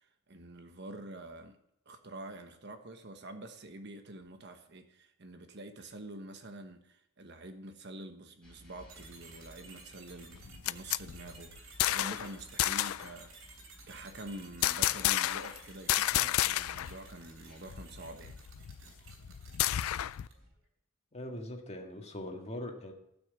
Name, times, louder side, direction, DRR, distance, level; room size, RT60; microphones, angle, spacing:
voice 1, 0.0-1.6 1.9-18.4, right 1 dB, 55° right, 1.2 m, -47 dB
sound 1, 8.4-20.5, equal, 5° left, 3.8 m, -58 dB
sound 2, 8.9-20.5, right 4 dB, 75° right, 3.4 m, -55 dB
sound 3, 10.3-12.3 12.6-13.1 14.6-15.6 15.9-17.0 17.2-17.3 17.7-20.3, left 14 dB, 90° left, 0.3 m, -31 dB
voice 2, 21.1-22.9, left 1 dB, 30° left, 1.8 m, -41 dB
12.5 x 6.3 x 8.3 m
head